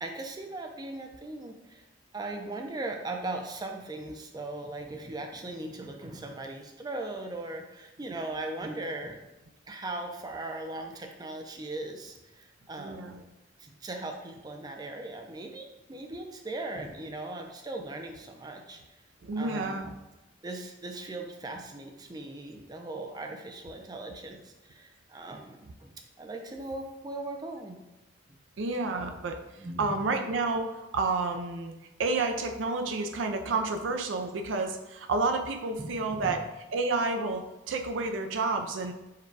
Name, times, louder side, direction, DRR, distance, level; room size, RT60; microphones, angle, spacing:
voice 1, 0.0-1.8 2.1-9.2 9.7-13.2 13.6-18.8 19.4-19.9 20.4-27.8 28.3-28.4 29.6-29.9 35.8-36.4, right 2 dB, 20° right, 3 dB, 0.4 m, -39 dB
voice 2, 12.8-13.2 19.2-19.9 28.6-29.4 29.8-31.7 32.0-36.4 36.7-38.9, right 3 dB, 80° right, 5 dB, 0.4 m, -30 dB
4.7 x 2.2 x 4.6 m, 0.99 s
head